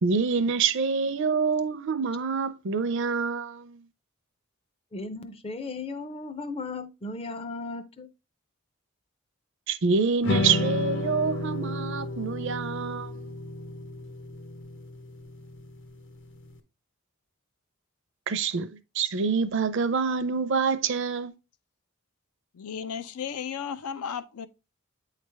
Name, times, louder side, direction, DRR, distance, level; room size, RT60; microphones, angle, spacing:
voice 1, 0.0-3.8 9.7-13.3 18.3-18.7 18.9-21.3, right 5 dB, 55° right, 0.5 m, -26 dB
voice 2, 4.9-8.1, left 3 dB, 25° left, 0.5 m, -36 dB
sound 1, 10.2-16.5, left 2 dB, 55° left, 0.8 m, -32 dB
voice 3, 22.5-24.5, left 7 dB, 90° left, 0.5 m, -34 dB
8.8 x 3.3 x 3.3 m
head